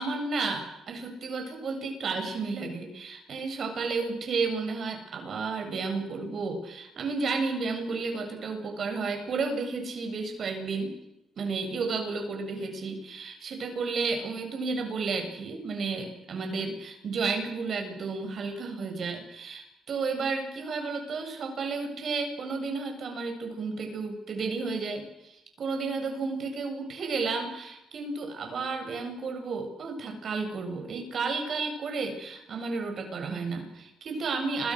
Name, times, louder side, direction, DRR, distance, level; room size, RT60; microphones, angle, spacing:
voice 1, 0.0-10.9 11.4-34.7, right 4 dB, 55° right, 5 dB, 8.0 m, -32 dB
29.5 x 23.5 x 6.6 m, 0.87 s
cardioid pair, 90°, 0 cm